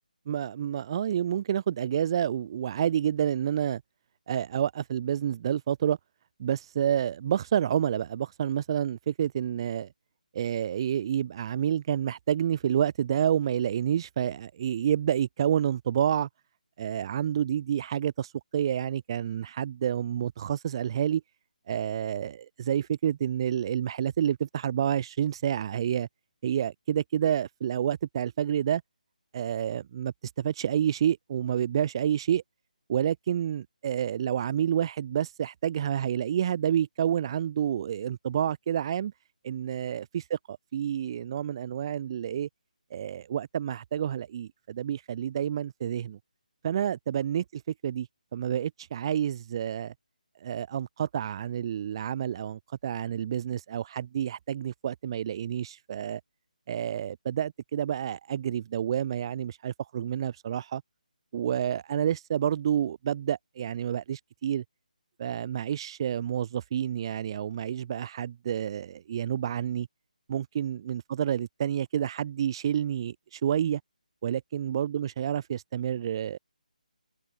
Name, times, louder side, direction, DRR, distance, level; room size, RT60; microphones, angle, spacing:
voice 1, 0.3-3.8 4.3-6.0 6.4-9.9 10.3-16.3 16.8-21.2 21.7-26.1 26.4-28.8 29.3-32.4 32.9-39.1 39.4-42.5 42.9-46.2 46.6-49.9 50.4-56.2 56.7-60.8 61.3-64.6 65.2-69.9 70.3-73.8 74.2-76.4, right 9 dB, 35° right, 7.9 m, -29 dB
figure-of-eight pair, 155°, 5 cm